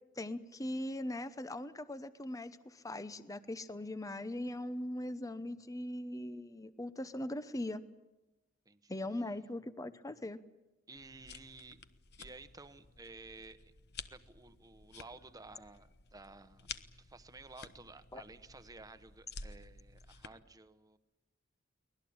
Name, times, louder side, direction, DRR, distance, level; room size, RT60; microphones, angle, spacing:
voice 1, 0.2-7.8 8.9-10.4 18.1-18.2, left 1 dB, 15° left, 13 dB, 0.8 m, -40 dB
sound 1, 10.9-20.3, left 5 dB, 55° left, 1.1 m, -52 dB
voice 2, 10.9-11.8 12.2-13.7 14.1-16.7 17.0-21.0, right 3 dB, 20° right, 11 dB, 1.1 m, -53 dB
24.0 x 19.0 x 8.7 m, 1.0 s
head